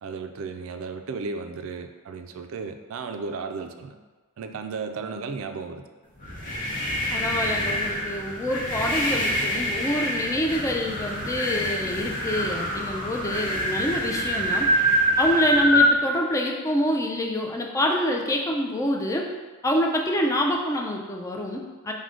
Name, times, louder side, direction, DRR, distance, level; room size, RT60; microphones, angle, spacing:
voice 1, 0.0-4.0 4.4-5.8, right 4 dB, 70° right, 7 dB, 0.3 m, -34 dB
sound 1, 6.2-16.0, equal, 40° left, 0.8 m, -25 dB
voice 2, 7.1-14.7 15.2-19.3 19.6-21.9, equal, 15° left, 1 dB, 0.3 m, -26 dB
4.8 x 2.1 x 3.7 m, 1.3 s
head